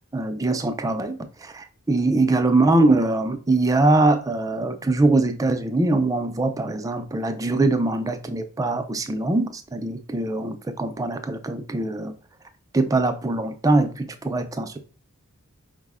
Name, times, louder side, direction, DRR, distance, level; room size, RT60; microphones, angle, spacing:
voice 1, 0.1-12.1 12.7-14.8, right 2 dB, 15° right, 0.3 m, -22 dB
4.9 x 2.0 x 3.5 m
head